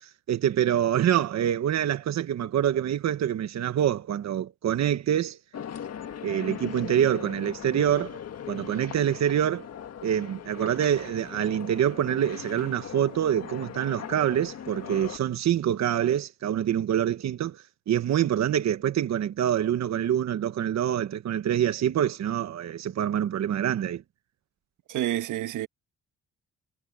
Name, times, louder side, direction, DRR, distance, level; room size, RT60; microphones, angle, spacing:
voice 1, 0.0-5.4 6.2-8.2 8.5-9.7 10.0-24.0, right 10 dB, 60° right, 1.3 m, -26 dB
sound 1, 5.5-15.2, left 9 dB, 55° left, 1.9 m, -39 dB
voice 2, 24.9-25.7, right 13 dB, 85° right, 1.5 m, -28 dB
cardioid pair, 90°, 30 cm